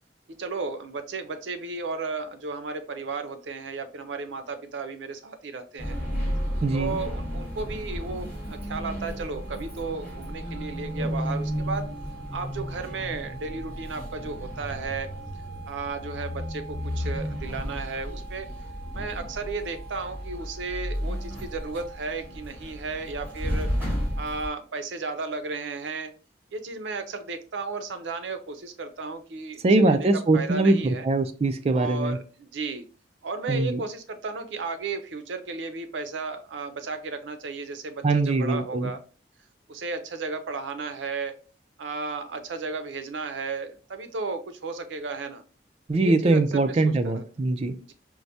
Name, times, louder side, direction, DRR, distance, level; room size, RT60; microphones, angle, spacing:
voice 1, 0.3-6.0 6.7-11.9 12.3-15.1 15.7-18.5 18.9-23.7 24.2-26.1 26.5-30.1 30.3-31.1 31.7-32.9 33.2-39.0 39.7-41.4 41.8-45.4 45.9-47.2, right 4 dB, 90° right, 8 dB, 0.5 m, -34 dB
sound 1, 5.8-24.5, equal, 10° right, 1.6 m, -33 dB
voice 2, 6.6-7.0 29.6-32.2 33.5-33.8 38.0-38.9 45.9-47.8, right 2 dB, 35° right, 8 dB, 0.3 m, -22 dB
4.5 x 2.1 x 2.6 m, 0.37 s
head